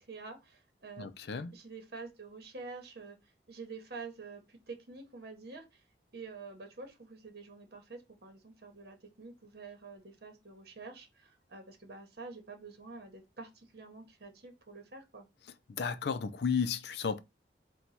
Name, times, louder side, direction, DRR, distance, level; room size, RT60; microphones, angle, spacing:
voice 1, 0.0-1.1 1.5-3.2 3.5-5.8 6.1-15.3, right 4 dB, 60° right, 1.0 m, -48 dB
voice 2, 1.0-1.5 15.7-17.2, left 6 dB, 65° left, 0.4 m, -33 dB
4.4 x 2.3 x 4.0 m
head